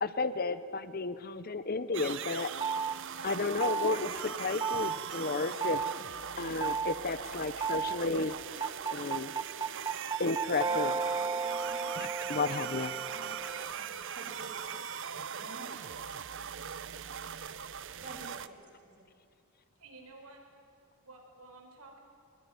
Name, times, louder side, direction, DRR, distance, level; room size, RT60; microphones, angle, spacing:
voice 1, 0.0-2.5 3.2-5.8 6.4-9.3 10.2-10.9 11.9-12.9, left 3 dB, 40° left, 13 dB, 0.8 m, -33 dB
sound 1, 1.9-18.5, right 8 dB, 55° right, 0.7 m, -40 dB
sound 2, 2.6-3.0 3.6-4.0 4.6-5.0 5.6-5.9 6.6-7.0 7.6-8.0 8.6-13.7, right 5 dB, 20° right, 0.7 m, -33 dB
voice 2, 10.6-15.8 16.1-16.3 18.0-19.0, right 1 dB, 35° right, 1 dB, 5.1 m, -51 dB
voice 3, 19.8-20.4 21.0-22.0, right 2 dB, 80° right, 2 dB, 4.7 m, -52 dB
22.0 x 21.5 x 9.5 m, 2.5 s
head